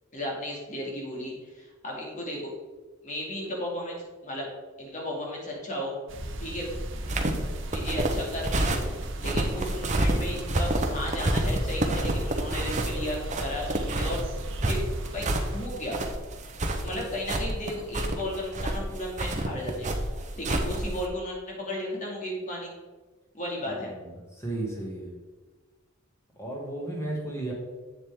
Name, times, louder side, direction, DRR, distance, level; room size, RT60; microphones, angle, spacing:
voice 1, 0.1-2.5 3.0-4.5 4.8-5.9 6.4-6.7 7.7-8.9 9.2-14.2 14.6-14.8 15.1-16.0 16.8-19.9 20.4-22.7 23.3-23.9, left 1 dB, 40° left, -2 dB, 2.5 m, -34 dB
sound 1, 6.1-15.7, right 1 dB, 65° right, 1.0 m, -36 dB
sound 2, 7.0-21.1, right 1 dB, 35° right, 0.9 m, -29 dB
voice 2, 23.6-25.1 26.4-27.5, right 1 dB, 15° left, -3 dB, 2.3 m, -34 dB
8.4 x 7.3 x 3.8 m, 1.3 s
head